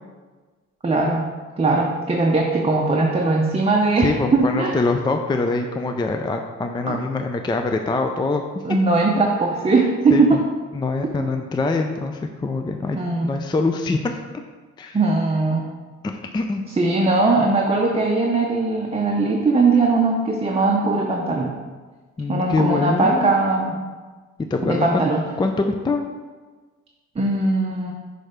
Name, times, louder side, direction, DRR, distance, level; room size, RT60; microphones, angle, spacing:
voice 1, 0.8-1.2 1.6-4.8 6.9-7.0 8.6-10.4 12.9-13.3 14.9-15.6 16.8-21.5 22.3-23.7 24.7-25.2 27.2-27.9, right 3 dB, 20° right, 0 dB, 0.7 m, -20 dB
voice 2, 4.0-8.4 10.1-10.4 10.7-14.2 14.8-15.0 16.3-16.6 22.2-23.3 24.5-25.0 25.4-26.1, left 3 dB, 15° left, 5 dB, 0.4 m, -24 dB
6.2 x 3.3 x 5.0 m, 1.4 s
cardioid pair, 90°, 30 cm